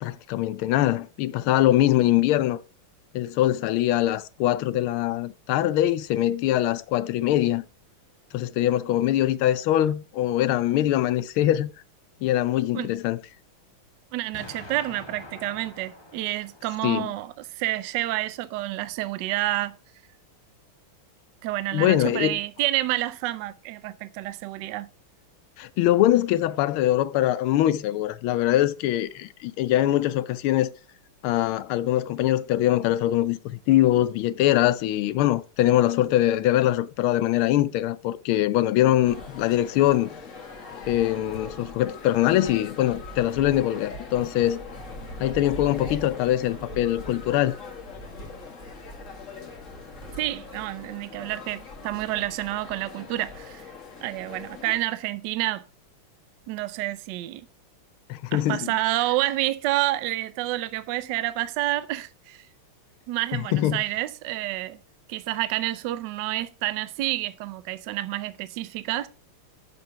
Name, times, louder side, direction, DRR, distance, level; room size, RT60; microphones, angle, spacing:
voice 1, 0.0-2.6 3.1-7.6 8.3-11.7 12.2-13.2 16.8-17.1 21.7-22.4 25.6-30.7 31.2-40.1 40.9-44.6 45.2-47.6 58.1-58.7 63.3-63.8, left 13 dB, 80° left, 1.4 m, -23 dB
voice 2, 14.1-19.7 21.4-24.9 50.2-53.7 54.0-55.6 56.5-57.5 58.3-62.4 63.1-64.8 65.1-69.1, right 16 dB, 70° right, 1.1 m, -29 dB
Explosion, 14.3-17.3, left 2 dB, 25° left, 0.6 m, -45 dB
sound 1, 39.0-54.8, left 3 dB, 40° left, 1.7 m, -40 dB
6.8 x 5.4 x 5.7 m
omnidirectional pair, 2.4 m